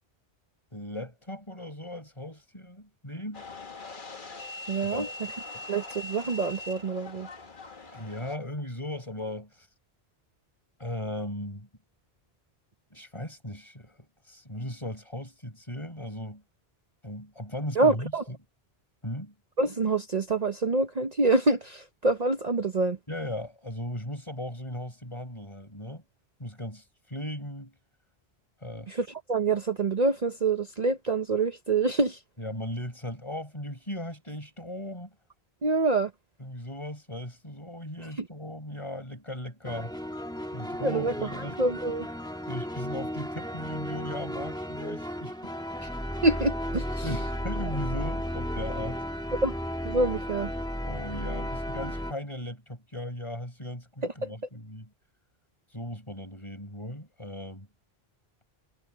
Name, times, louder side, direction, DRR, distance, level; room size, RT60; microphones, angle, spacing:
voice 1, 0.7-3.4 4.8-5.1 5.5-5.7 7.9-9.7 10.8-11.7 12.9-16.4 17.0-18.4 19.0-19.3 23.1-26.0 26.4-27.7 28.6-28.9 32.4-35.1 36.4-39.9 40.5-41.6 42.5-45.6 47.0-49.0 50.9-54.9 55.7-57.7, left 1 dB, 30° left, 6.7 m, -37 dB
sound 1, 3.3-8.4, left 2 dB, 50° left, 1.7 m, -42 dB
voice 2, 4.7-5.1 5.7-7.3 17.8-18.2 19.6-23.0 28.9-32.2 35.6-36.1 38.2-38.3 40.8-42.1 45.8-45.9 46.2-47.1 49.4-49.6 49.8-50.5 54.2-54.3, right 3 dB, 40° right, 1.0 m, -26 dB
sound 2, 39.7-52.1, equal, 5° left, 1.6 m, -34 dB
omnidirectional pair, 1.1 m